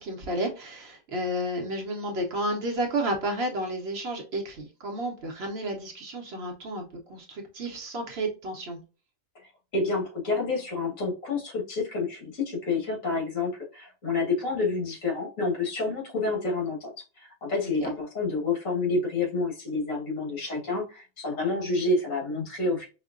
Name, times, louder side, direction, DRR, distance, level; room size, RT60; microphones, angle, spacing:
voice 1, 0.0-8.8 17.6-17.9, right 1 dB, 55° right, 2 dB, 0.9 m, -32 dB
voice 2, 9.7-16.9 17.2-22.9, left 3 dB, 75° left, -2 dB, 1.8 m, -28 dB
4.9 x 2.1 x 2.4 m, 0.32 s
omnidirectional pair, 1.4 m